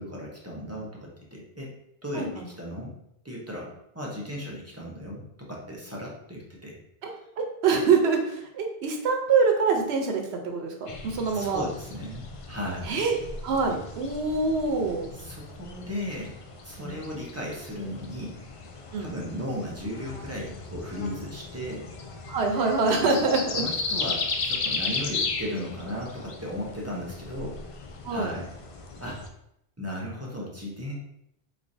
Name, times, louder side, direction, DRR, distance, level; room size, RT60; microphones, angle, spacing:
voice 1, 0.0-1.7 2.0-3.0 3.2-6.8 11.3-13.0 15.1-16.3 16.6-18.4 19.0-21.9 23.0-23.1 23.5-27.6 28.1-28.5 29.0-29.2 29.8-30.9, equal, 15° right, -3 dB, 0.6 m, -36 dB
voice 2, 2.1-2.4 7.0-11.6 12.8-13.2 13.4-15.1 16.8-17.0 18.9-19.1 22.3-23.6 28.0-28.3, right 4 dB, 85° right, 3 dB, 1.0 m, -25 dB
sound 1, 10.9-29.3, left 4 dB, 65° left, 0.3 m, -36 dB
3.8 x 3.2 x 2.6 m, 0.78 s
omnidirectional pair, 1.1 m